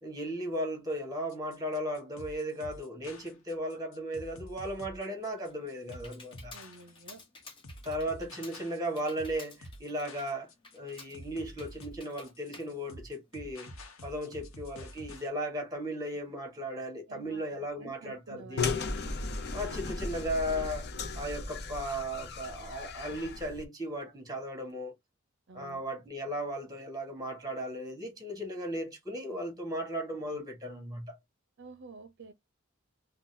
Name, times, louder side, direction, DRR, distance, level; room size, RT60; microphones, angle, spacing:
voice 1, 0.0-6.5 7.8-18.9 19.5-20.9 21.1-24.9 25.5-31.2, equal, 20° right, 1.3 m, -36 dB
sound 1, 1.3-15.3, equal, 85° left, 0.9 m, -48 dB
Computer keyboard, 5.1-13.7, left 3 dB, 25° left, 1.1 m, -54 dB
voice 2, 6.5-7.2 17.1-18.8 25.5-25.8 31.6-32.3, right 3 dB, 60° right, 0.6 m, -50 dB
sound 2, 18.6-23.7, left 4 dB, 55° left, 0.6 m, -36 dB
3.8 x 2.3 x 2.6 m
head